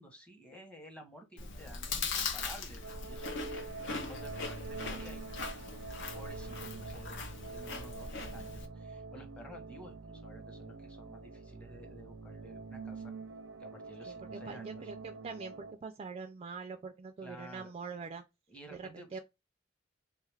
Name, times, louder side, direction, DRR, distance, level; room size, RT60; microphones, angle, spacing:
voice 1, 0.0-3.5 4.1-5.8 6.1-7.2 7.5-13.1 13.6-14.9 17.2-17.7 18.5-19.2, equal, 5° left, 0.8 m, -52 dB
Chewing mastication, 1.4-8.7, left 4 dB, 65° left, 0.6 m, -40 dB
sound 1, 2.8-15.7, right 4 dB, 85° right, 0.5 m, -46 dB
voice 2, 14.1-18.2 18.7-19.2, right 4 dB, 30° right, 0.3 m, -44 dB
3.3 x 2.3 x 3.2 m
head